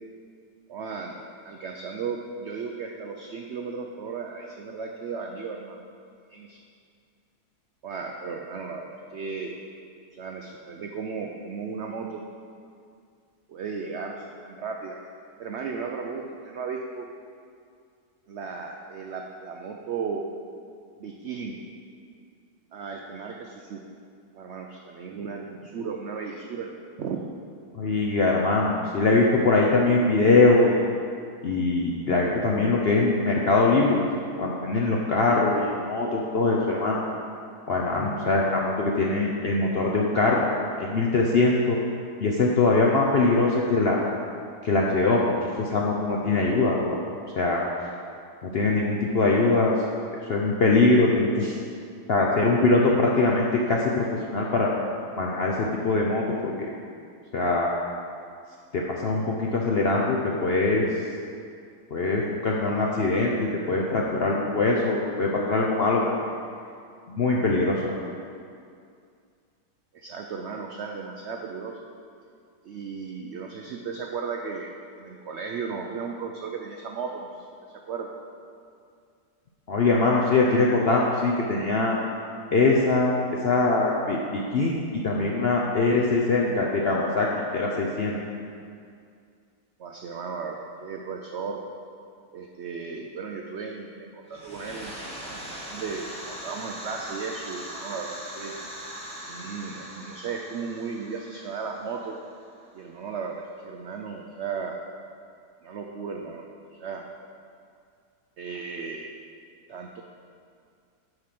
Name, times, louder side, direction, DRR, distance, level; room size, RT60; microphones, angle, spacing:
voice 1, 0.7-1.1 1.4-5.8 6.3-6.6 7.8-9.5 10.1-12.2 13.5-15.1 15.4-17.1 18.3-20.3 21.0-21.6 22.7-23.8 24.3-27.3 69.9-71.8 72.6-74.7 75.0-78.1 89.8-91.6 92.3-94.9 95.2-98.5 99.3-102.2 102.7-104.8 105.6-106.4 106.8-107.0 108.4-109.1 109.7-110.0, right 5 dB, 80° right, 2 dB, 0.6 m, -35 dB
voice 2, 27.7-30.9 31.4-34.0 34.4-37.0 37.7-40.4 40.8-41.8 42.2-44.0 44.6-47.0 47.4-47.9 48.4-49.7 50.2-51.6 52.1-54.7 55.2-56.7 57.3-57.7 58.7-60.9 61.9-66.0 67.1-67.8 79.7-82.0 82.5-83.2 83.4-88.2, left 3 dB, 65° left, -2 dB, 0.6 m, -22 dB
sound 1, 94.3-102.8, equal, 5° left, 1.0 m, -40 dB
7.7 x 4.9 x 5.9 m, 2.3 s
omnidirectional pair, 1.8 m